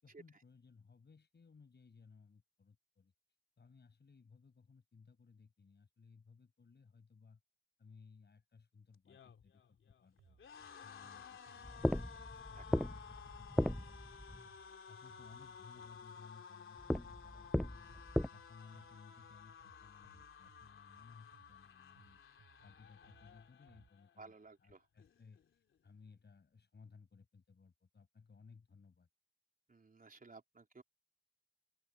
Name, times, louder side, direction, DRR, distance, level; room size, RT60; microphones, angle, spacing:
voice 1, 0.0-3.1 3.6-7.4 7.8-10.4 10.8-12.0 12.3-14.5 14.9-18.0 18.3-22.2 22.6-24.3 24.6-25.4 25.8-29.1, left 5 dB, 60° left, 6.4 m, -61 dB
sound 1, 8.9-24.1 24.5-24.7 25.0-25.8, left 7 dB, 85° left, 3.3 m, -55 dB
sound 2, 10.2-16.2 17.0-23.9, right 7 dB, 80° right, 4.7 m, -69 dB
sound 3, 11.6-14.4 16.8-18.3, left 1 dB, 5° left, 0.3 m, -37 dB
voice 2, 24.2-24.9 29.7-30.8, right 3 dB, 45° right, 3.6 m, -56 dB
cardioid pair, 50°, 20 cm